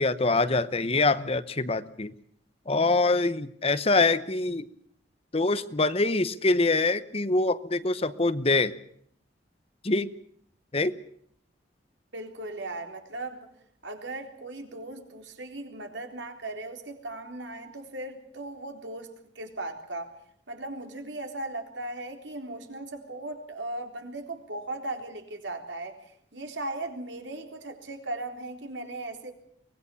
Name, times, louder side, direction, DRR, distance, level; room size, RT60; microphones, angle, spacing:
voice 1, 0.0-2.1 2.7-4.7 5.3-8.7 9.8-10.1 10.7-10.9, left 3 dB, 35° left, 14 dB, 0.9 m, -24 dB
voice 2, 12.1-13.5 13.8-19.1 19.4-20.1 20.5-29.3, right 2 dB, 80° right, 4 dB, 3.8 m, -37 dB
24.0 x 20.0 x 7.0 m, 0.66 s
head